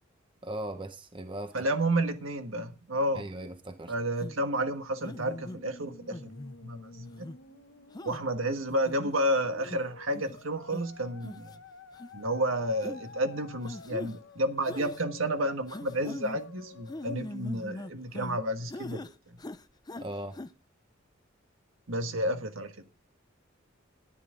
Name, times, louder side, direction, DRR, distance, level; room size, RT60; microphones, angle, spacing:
voice 1, 0.4-1.7 3.1-3.9 20.0-20.4, right 1 dB, 25° right, 1.0 m, -38 dB
voice 2, 1.5-3.2 3.9-6.3 6.6-7.3 8.0-11.5 12.1-19.4 21.9-22.8, right 1 dB, 80° right, 1.6 m, -31 dB
sound 1, 4.2-4.4 5.0-5.6 6.1-6.6 7.1-7.4 7.9-8.2 8.7-9.2 9.7-9.8 10.1-10.4 10.7-10.8 11.2-11.6 11.9-12.1 12.8-13.0 13.6-14.1 14.6-15.0 15.7-16.4 16.9-18.4 18.7-19.1 19.4-20.1 20.3-20.5, left 1 dB, 20° left, 0.5 m, -41 dB
Musical instrument, 4.7-18.1, left 4 dB, 65° left, 1.1 m, -52 dB
14.0 x 10.5 x 3.8 m
head